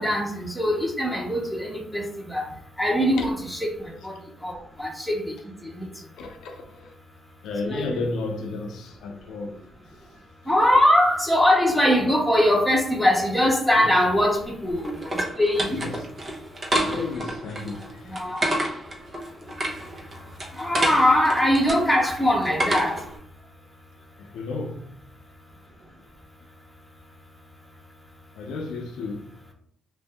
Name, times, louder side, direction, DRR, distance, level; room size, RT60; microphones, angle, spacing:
voice 1, 0.0-2.4 2.8-3.6 3.8-4.1 4.4-5.3 5.7-5.9 7.6-8.0 10.5-14.9 15.4-15.8 18.1-18.5 20.6-23.0, left 1 dB, ahead, 1.1 m, -22 dB
voice 2, 6.1-7.0 7.4-9.6 13.8-14.0 15.7-16.1 16.7-18.2 20.3-20.8 24.2-25.0 28.3-29.3, left 3 dB, 80° left, 0.6 m, -33 dB
sound 1, 14.2-23.2, right 1 dB, 40° right, 0.9 m, -30 dB
3.2 x 2.6 x 3.5 m
cardioid pair, 90°, 0 cm